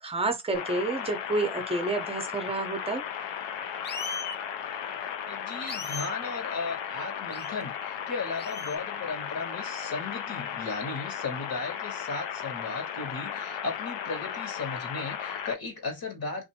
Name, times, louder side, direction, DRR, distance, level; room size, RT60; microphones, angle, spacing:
voice 1, 0.0-3.0, right 2 dB, 10° right, 0.7 m, -29 dB
sound 1, 0.5-15.5, left 8 dB, 65° left, 0.7 m, -35 dB
sound 2, 3.8-4.4 5.7-6.2 7.3-7.6 8.4-8.8, left 4 dB, 25° left, 0.4 m, -37 dB
voice 2, 5.3-16.5, left 4 dB, 50° left, 1.3 m, -36 dB
2.6 x 2.5 x 2.8 m
cardioid pair, 95°, 47 cm